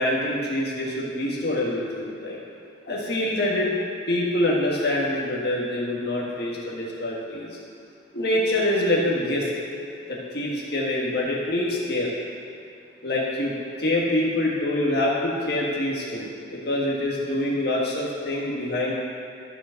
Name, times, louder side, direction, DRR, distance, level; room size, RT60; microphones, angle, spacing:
voice 1, 0.0-2.4 2.9-3.7 4.1-7.5 8.1-9.5 10.1-12.1 13.0-13.5 13.8-18.9, left 1 dB, 55° left, -4 dB, 1.6 m, -25 dB
12.5 x 5.1 x 6.4 m, 2.4 s
head